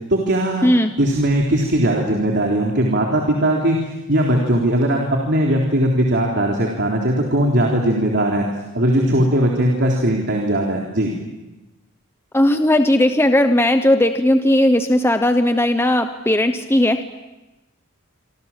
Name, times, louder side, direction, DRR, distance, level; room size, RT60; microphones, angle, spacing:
voice 1, 0.1-0.7 1.0-3.8 4.1-8.4 8.7-11.1, right 1 dB, 50° right, 0 dB, 3.7 m, -19 dB
voice 2, 0.6-0.9 12.3-17.0, left 1 dB, 10° left, 7 dB, 1.0 m, -16 dB
26.5 x 26.5 x 7.4 m, 1.0 s
head